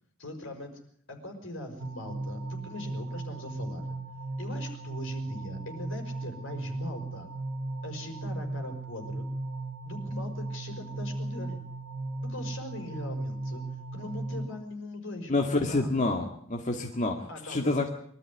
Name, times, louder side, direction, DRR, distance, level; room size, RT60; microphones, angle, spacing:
voice 1, 0.2-0.8 1.1-4.0 4.4-7.3 7.8-9.3 9.8-11.6 12.2-13.6 13.9-15.9 17.3-17.9, left 1 dB, 70° left, 5 dB, 5.5 m, -40 dB
sound 1, 1.8-14.5, right 2 dB, 65° right, 2.2 m, -36 dB
voice 2, 15.3-17.9, left 2 dB, 35° left, 2 dB, 2.0 m, -28 dB
23.5 x 13.5 x 9.8 m, 0.64 s
head